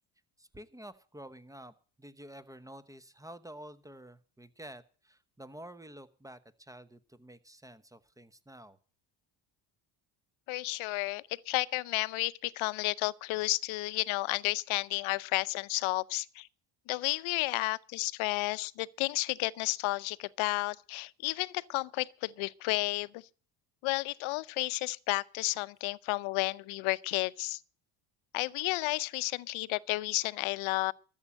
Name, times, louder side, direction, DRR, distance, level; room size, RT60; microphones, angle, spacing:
voice 1, 0.4-8.8, right 1 dB, 5° right, 1.0 m, -50 dB
voice 2, 10.5-16.5 16.9-23.2 23.8-27.6 28.3-30.9, left 21 dB, 80° left, 0.8 m, -32 dB
13.5 x 7.4 x 8.7 m
cardioid pair, 105°, 47 cm